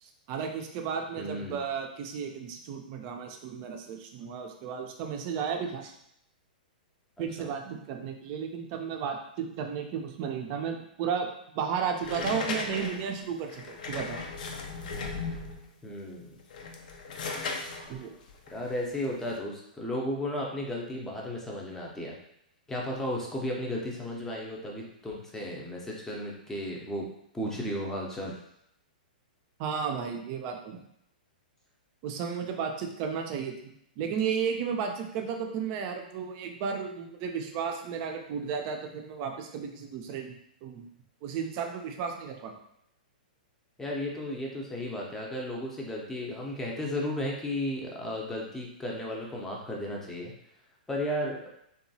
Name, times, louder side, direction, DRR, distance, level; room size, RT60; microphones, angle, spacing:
voice 1, 0.0-6.0 7.2-11.3 11.5-14.2 17.9-18.1 29.6-30.8 32.0-33.5 34.0-40.4 40.6-40.9 41.2-42.5, right 6 dB, 40° right, 4 dB, 0.5 m, -33 dB
voice 2, 1.2-1.6 7.2-7.5 15.8-16.4 18.5-22.2 22.7-27.0 27.3-28.3 43.8-50.3 50.9-51.5, left 1 dB, 10° left, -2 dB, 0.6 m, -34 dB
sound 1, 12.0-15.7 16.4-19.4, left 4 dB, 65° left, 0.4 m, -37 dB
2.8 x 2.3 x 2.7 m, 0.74 s
hypercardioid pair, 125°, 5 cm